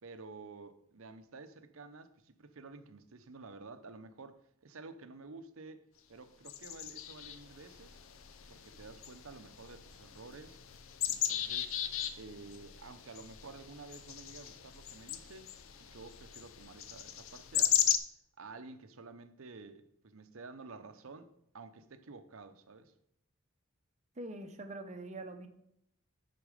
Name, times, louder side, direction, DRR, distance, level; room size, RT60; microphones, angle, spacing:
voice 1, 0.0-5.8 6.1-8.0 8.5-10.6 11.1-11.7 12.2-15.5 15.8-17.8 18.4-22.9, right 3 dB, 65° right, 0.7 m, -51 dB
sound 1, 6.5-18.0, left 11 dB, 65° left, 0.6 m, -37 dB
voice 2, 24.2-25.5, right 2 dB, 30° right, 0.8 m, -44 dB
11.0 x 4.3 x 5.0 m
head